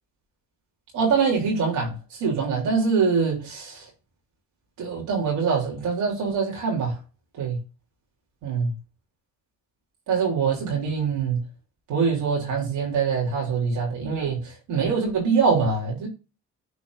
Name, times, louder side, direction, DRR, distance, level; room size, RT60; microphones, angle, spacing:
voice 1, 0.9-3.9 4.8-7.0 7.4-7.6 8.4-8.7 10.1-11.5 11.9-16.1, right 5 dB, 90° right, 3.2 m, -24 dB
12.0 x 4.3 x 2.6 m
cardioid pair, 90°, 30 cm